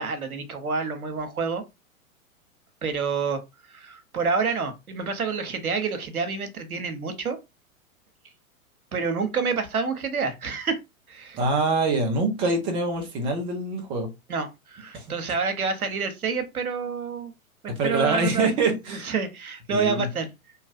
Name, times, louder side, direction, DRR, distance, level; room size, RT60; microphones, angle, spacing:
voice 1, 0.0-1.6 2.8-3.4 3.7-7.4 8.9-10.8 11.1-11.4 14.3-17.3 17.8-18.5 18.9-20.3, right 5 dB, 90° right, 0.8 m, -28 dB
voice 2, 11.3-14.1 14.9-15.0 17.8-19.1 19.7-20.1, right 3 dB, 15° right, 0.4 m, -25 dB
2.7 x 2.3 x 2.5 m
figure-of-eight pair, 110°, 42 cm